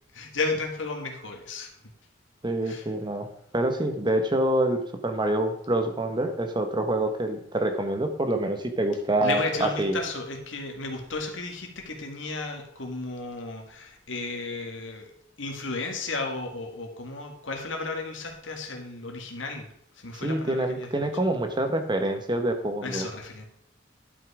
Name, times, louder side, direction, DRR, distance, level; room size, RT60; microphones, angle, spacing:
voice 1, 0.1-1.7 2.6-2.9 9.2-15.1 15.4-19.7 20.0-21.2 22.8-23.5, left 3 dB, 90° left, 3 dB, 1.9 m, -34 dB
voice 2, 2.4-3.3 3.5-10.0 20.2-23.0, right 1 dB, 25° right, 7 dB, 1.1 m, -26 dB
11.0 x 5.7 x 4.8 m, 0.68 s
head